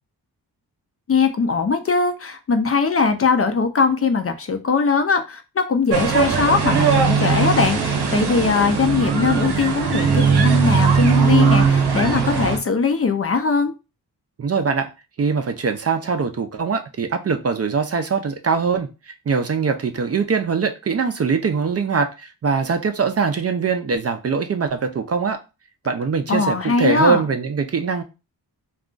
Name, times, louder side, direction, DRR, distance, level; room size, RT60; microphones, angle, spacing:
voice 1, 1.1-13.7 26.3-27.2, left 4 dB, 35° left, 7 dB, 0.4 m, -20 dB
sound 1, 5.9-12.6, right 6 dB, 75° right, 0.8 m, -19 dB
voice 2, 14.4-14.9 15.2-25.4 25.9-28.0, right 5 dB, 40° right, 7 dB, 0.4 m, -22 dB
2.4 x 2.3 x 3.7 m, 0.28 s
wide cardioid pair, 85°, 40 cm